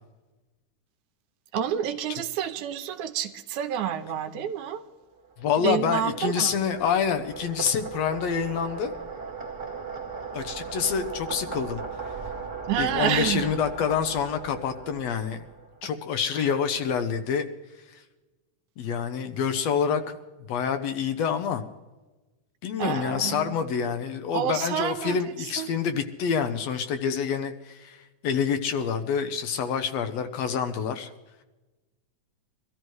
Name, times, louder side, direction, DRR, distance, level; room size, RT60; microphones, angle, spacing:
voice 1, 1.5-4.8 5.6-6.5 12.7-13.4 22.8-23.6 24.3-25.2 25.6-25.7, right 9 dB, 90° right, 10 dB, 2.4 m, -28 dB
sound 1, 5.2-15.9, right 5 dB, 30° right, 1.8 m, -38 dB
voice 2, 5.4-8.9 10.3-11.8 12.7-15.4 15.8-17.5 17.9-18.0 18.8-20.2 20.5-21.6 22.6-31.1, left 7 dB, 70° left, 8 dB, 1.8 m, -27 dB
23.0 x 13.5 x 3.1 m, 1.2 s
omnidirectional pair, 3.4 m